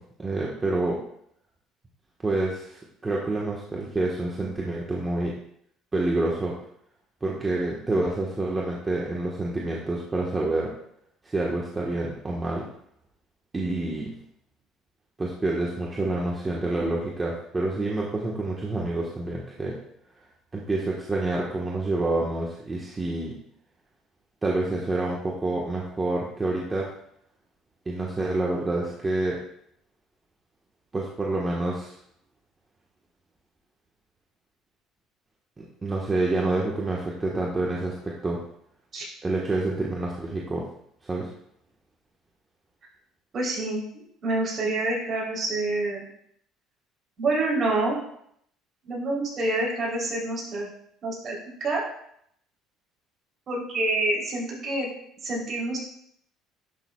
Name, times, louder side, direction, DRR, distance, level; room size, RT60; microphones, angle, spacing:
voice 1, 0.2-1.0 2.2-5.3 5.9-6.6 7.2-10.7 11.2-12.7 13.5-14.1 15.2-19.8 20.5-23.4 24.4-26.9 27.8-29.4 30.9-32.0 35.6-38.4 39.2-40.6 41.0-41.3, right 2 dB, 20° right, -3 dB, 1.3 m, -28 dB
voice 2, 43.3-46.1 47.2-48.0 48.8-50.7 51.0-51.8 53.5-54.9 55.2-55.8, right 2 dB, 45° right, -3 dB, 3.4 m, -27 dB
11.0 x 6.6 x 2.3 m, 0.70 s
supercardioid pair, 100°, 0 cm